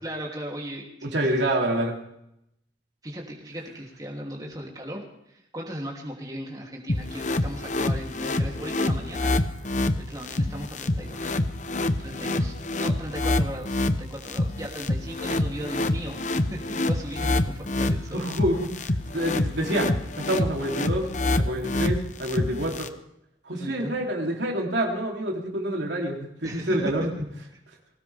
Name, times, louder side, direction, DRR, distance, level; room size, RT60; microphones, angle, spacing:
voice 1, 0.0-1.4 3.0-11.3 12.0-18.3 23.5-23.9 26.4-26.9 27.5-27.6, equal, 20° right, -1 dB, 3.0 m, -37 dB
voice 2, 1.0-2.0 18.1-22.9 23.4-27.1, right 1 dB, 70° right, 0 dB, 3.2 m, -27 dB
sound 1, 6.9-22.9, left 2 dB, 40° left, 0.9 m, -27 dB
21.0 x 18.0 x 3.5 m, 0.79 s
head